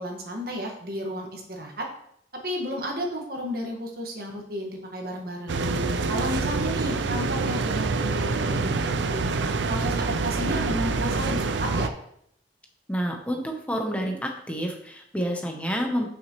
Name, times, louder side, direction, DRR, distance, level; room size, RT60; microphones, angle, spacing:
voice 1, 0.0-1.8 2.4-5.7 6.1-9.2 9.7-11.9, equal, 55° right, 1 dB, 1.5 m, -32 dB
sound 1, 5.5-11.9, right 3 dB, 75° right, 0.5 m, -26 dB
voice 2, 12.9-16.1, equal, 5° left, 2 dB, 0.7 m, -29 dB
9.3 x 5.9 x 3.0 m, 0.72 s
head